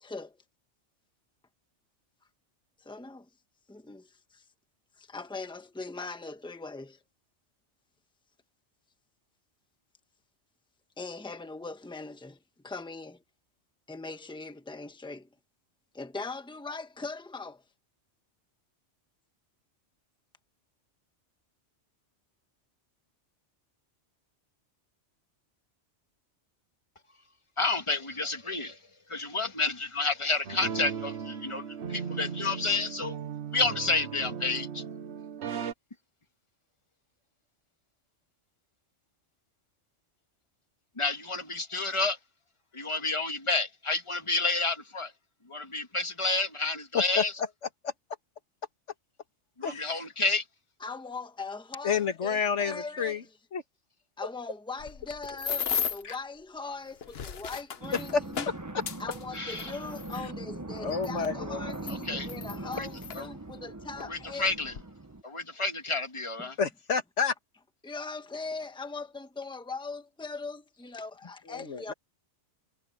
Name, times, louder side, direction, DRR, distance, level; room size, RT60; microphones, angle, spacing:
voice 1, 0.0-0.4 2.8-3.3 3.7-4.4 5.0-7.0 11.0-13.2 13.9-15.3 15.9-17.6 50.8-53.2 54.2-58.5 59.0-64.5 66.4-66.5 67.8-71.9, left 3 dB, 5° left, 1.2 m, -40 dB
voice 2, 27.6-28.8 29.1-33.2 33.5-34.8 41.0-42.2 42.7-45.1 45.5-47.3 49.6-50.4 59.3-59.8 61.9-62.3 62.6-62.9 63.2-63.3 64.1-64.7 65.2-66.6, left 3 dB, 25° left, 1.7 m, -30 dB
sound 1, 30.4-35.7, right 7 dB, 70° right, 1.2 m, -37 dB
voice 3, 49.6-50.0 51.8-53.2 53.5-53.6 56.0-56.2 58.1-58.2 60.8-61.6 66.6-67.3 71.5-71.9, left 6 dB, 85° left, 1.8 m, -29 dB
sound 2, 54.8-56.1 56.9-60.2 61.0-61.1 61.7-63.2 64.0-64.1 64.5-64.8, left 7 dB, 60° left, 1.2 m, -35 dB
sound 3, 57.8-65.2, right 2 dB, 15° right, 0.9 m, -41 dB
omnidirectional pair, 1.2 m